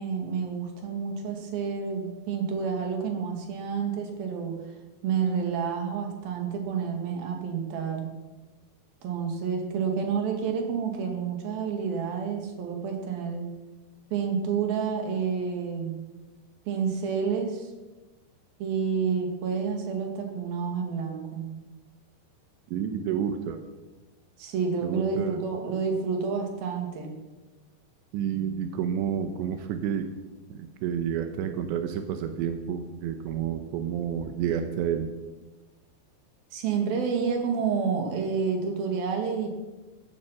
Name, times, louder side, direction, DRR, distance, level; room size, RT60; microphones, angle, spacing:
voice 1, 0.0-4.6 5.0-8.1 9.0-13.5 14.1-15.9 16.7-17.7 18.6-21.5 24.4-27.1 36.5-39.6, right 6 dB, 60° right, 3 dB, 3.8 m, -29 dB
voice 2, 22.7-23.6 24.8-25.4 28.1-30.1 30.5-35.1, right 8 dB, 85° right, 7 dB, 3.2 m, -30 dB
14.5 x 14.5 x 5.8 m, 1.2 s
omnidirectional pair, 5.0 m